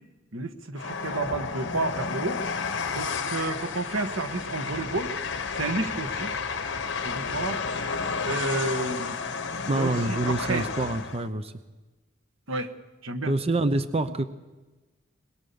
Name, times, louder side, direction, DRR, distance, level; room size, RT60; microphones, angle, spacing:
voice 1, 0.3-2.4 2.9-5.2 5.5-6.3 7.0-7.6 8.3-9.2 9.7-10.7 12.5-12.7 13.0-13.3, right 2 dB, 85° right, 8 dB, 1.5 m, -31 dB
Train, 0.8-11.3, left 5 dB, 60° left, 1.4 m, -31 dB
voice 2, 9.7-11.5 13.3-14.3, right 2 dB, 30° right, 11 dB, 0.8 m, -26 dB
24.0 x 21.5 x 7.0 m, 1.2 s
head